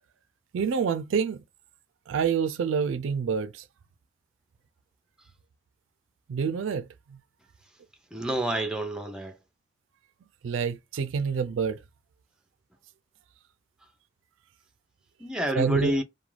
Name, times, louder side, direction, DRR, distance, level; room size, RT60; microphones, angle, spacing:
voice 1, 0.5-1.4 2.1-3.6 6.3-7.2 10.4-11.8 15.5-15.9, right 6 dB, 80° right, 0.4 m, -27 dB
voice 2, 8.1-9.3 15.2-16.0, right 1 dB, 5° right, 0.4 m, -28 dB
2.3 x 2.2 x 3.1 m
head